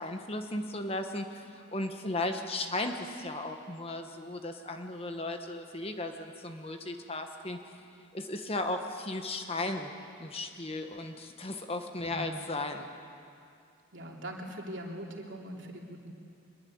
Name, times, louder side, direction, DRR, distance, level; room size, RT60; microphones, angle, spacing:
voice 1, 0.0-7.6 8.1-9.9 10.2-12.9, left 2 dB, 30° left, 5 dB, 1.4 m, -36 dB
voice 2, 12.0-12.3 13.9-16.1, right 1 dB, 60° right, 0 dB, 3.3 m, -41 dB
24.0 x 22.0 x 8.8 m, 2.4 s
head